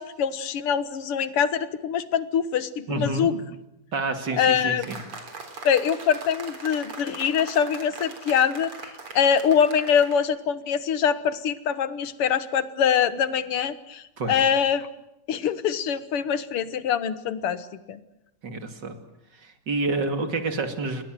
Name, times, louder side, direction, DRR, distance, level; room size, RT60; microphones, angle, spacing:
voice 1, 0.0-3.4 4.3-4.9 5.6-8.7 9.1-14.9 15.3-18.0, left 7 dB, 85° left, 13 dB, 2.3 m, -24 dB
voice 2, 2.9-3.3 3.9-5.0 14.2-14.4 18.4-19.0 19.4-21.0, right 3 dB, 50° right, 7 dB, 3.1 m, -28 dB
sound 1, 4.8-10.2, right 3 dB, 75° right, 4.7 m, -41 dB
29.0 x 21.0 x 7.7 m, 0.88 s
omnidirectional pair, 2.4 m